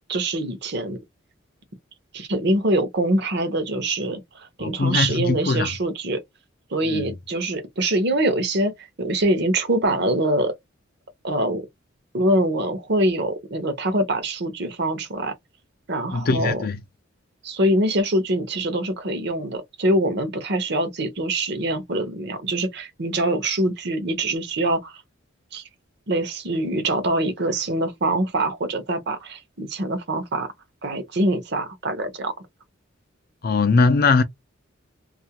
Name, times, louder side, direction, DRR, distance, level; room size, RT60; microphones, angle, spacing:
voice 1, 0.1-1.0 2.1-6.2 6.7-10.5 11.2-11.6 12.1-15.3 15.9-16.6 17.4-24.9 25.5-25.6 26.1-30.5 30.8-32.3, right 1 dB, 55° right, 0.7 m, -24 dB
voice 2, 4.6-5.7 6.9-7.1 16.1-16.8 33.4-34.2, left 4 dB, 50° left, 0.4 m, -20 dB
2.4 x 2.1 x 2.8 m
head